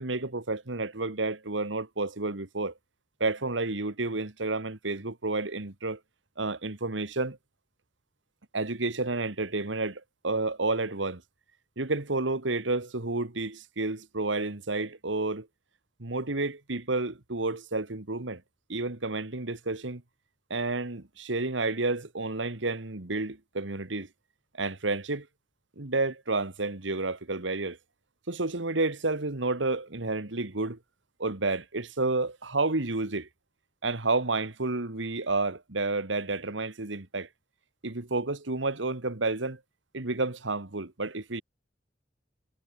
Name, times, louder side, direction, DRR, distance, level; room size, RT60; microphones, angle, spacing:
voice 1, 0.0-2.7 3.2-6.0 6.4-7.4 8.5-11.2 11.8-15.5 16.0-18.4 18.7-20.0 20.5-24.1 24.6-25.3 25.8-27.8 28.3-30.8 31.2-33.3 33.8-37.3 37.8-39.6 39.9-41.4, right 3 dB, 80° right, 1.9 m, -30 dB
head